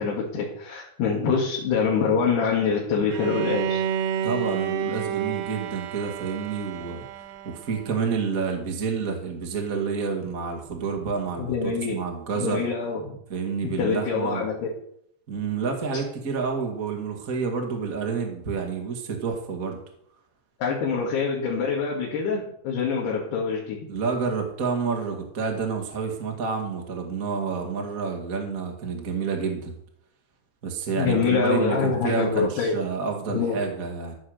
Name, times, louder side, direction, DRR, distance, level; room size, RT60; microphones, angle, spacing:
voice 1, 0.0-3.8 11.4-12.0 12.4-13.1 13.6-14.7 20.6-23.8 31.0-32.8 33.3-33.5, left 5 dB, 75° left, -4 dB, 4.0 m, -25 dB
Bowed string instrument, 3.1-8.1, right 8 dB, 90° right, 3.2 m, -30 dB
voice 2, 4.2-7.0 7.4-12.6 13.3-14.5 15.3-19.8 23.9-29.7 30.6-34.1, right 5 dB, 40° right, 2 dB, 1.2 m, -29 dB
14.5 x 7.1 x 6.6 m, 0.70 s
omnidirectional pair, 4.8 m